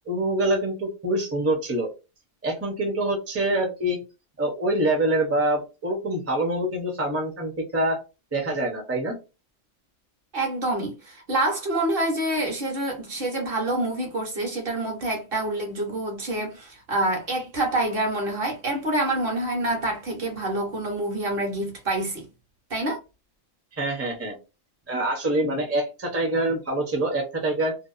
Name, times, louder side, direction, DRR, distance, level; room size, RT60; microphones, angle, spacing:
voice 1, 0.1-1.9 2.4-4.0 4.4-8.0 8.3-9.2 23.7-24.3 24.9-27.8, right 1 dB, 15° right, 0.5 m, -25 dB
voice 2, 10.3-22.3 22.7-23.0, right 1 dB, 50° right, 1.0 m, -27 dB
2.6 x 2.2 x 2.4 m
omnidirectional pair, 1.3 m